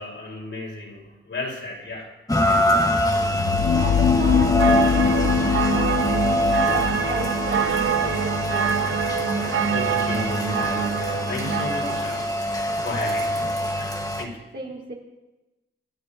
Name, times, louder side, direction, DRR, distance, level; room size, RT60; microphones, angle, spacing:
voice 1, 0.0-2.1 2.5-2.9 9.7-12.4 12.8-13.4 13.7-13.9 14.2-14.3, left 2 dB, 75° left, -3 dB, 5.6 m, -33 dB
Rain, 2.3-14.2, equal, 15° left, 1.6 m, -25 dB
sound 1, 3.2-9.1, left 7 dB, 50° left, 0.9 m, -23 dB
voice 2, 3.7-9.0 13.4-13.5 14.5-14.9, right 3 dB, 55° right, -3 dB, 4.5 m, -34 dB
sound 2, 4.6-12.2, right 7 dB, 75° right, 0.8 m, -25 dB
26.5 x 13.0 x 2.9 m, 1.1 s
wide cardioid pair, 100°, 21 cm